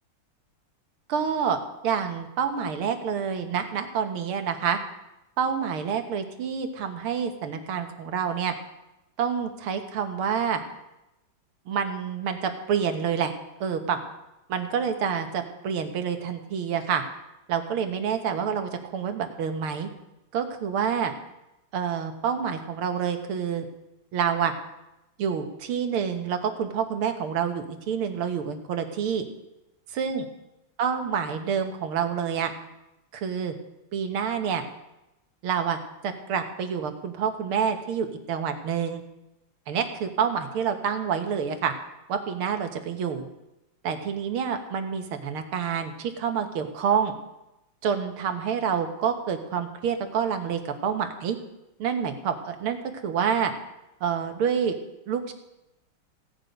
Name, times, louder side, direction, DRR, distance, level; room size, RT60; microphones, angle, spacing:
voice 1, 1.1-1.6 1.8-4.8 5.4-8.5 9.2-10.6 11.7-13.3 13.6-14.0 14.5-17.0 17.5-19.9 20.3-21.1 21.7-23.7 24.1-24.5 25.2-29.2 30.0-30.3 30.8-32.5 33.1-33.5 33.9-34.6 35.4-39.0 39.7-41.7 42.1-43.3 43.8-47.1 47.8-51.4 51.8-52.8 53.0-53.5 54.0-54.8 55.1-55.3, right 7 dB, 80° right, 6 dB, 2.1 m, -27 dB
16.5 x 9.6 x 5.2 m, 0.94 s
omnidirectional pair, 2.3 m